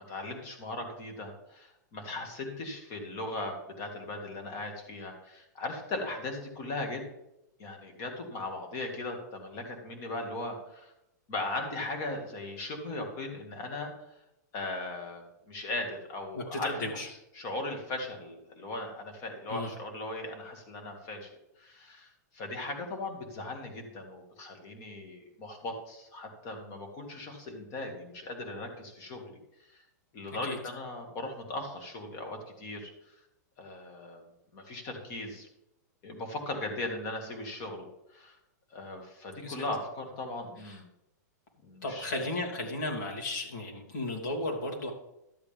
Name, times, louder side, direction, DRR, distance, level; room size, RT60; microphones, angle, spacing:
voice 1, 0.1-7.0 7.6-10.9 11.3-14.1 14.5-21.3 21.6-29.8 30.1-33.2 33.6-34.2 34.5-35.5 36.0-38.4 38.7-40.9 41.6-42.1, left 2 dB, 30° left, 4 dB, 2.1 m, -38 dB
voice 2, 16.3-17.1 19.5-19.7 30.4-30.6 39.4-39.6 40.6-40.8 41.8-44.9, left 2 dB, 85° left, 0 dB, 2.8 m, -34 dB
12.0 x 8.1 x 3.5 m, 0.86 s
supercardioid pair, 160°, 10 cm